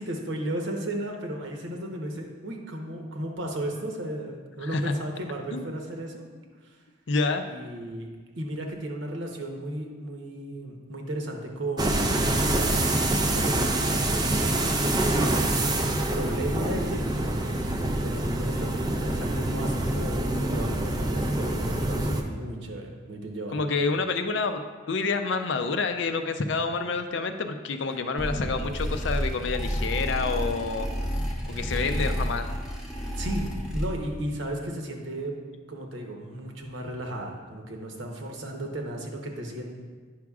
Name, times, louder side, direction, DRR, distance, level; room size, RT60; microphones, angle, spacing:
voice 1, 0.0-6.3 6.6-6.8 7.5-8.1 8.4-12.1 12.4-23.6 33.2-35.4 35.7-39.7, right 1 dB, 70° right, 1 dB, 0.9 m, -35 dB
voice 2, 4.6-5.0 5.5-5.7 7.1-7.4 23.5-24.6 24.9-30.9 31.5-32.5, left 4 dB, 65° left, 7 dB, 0.4 m, -28 dB
sound 1, 11.8-22.2, right 1 dB, 20° right, 0.4 m, -26 dB
sound 2, 28.2-34.2, equal, 5° right, 0.8 m, -30 dB
9.5 x 6.0 x 2.4 m, 1.5 s
head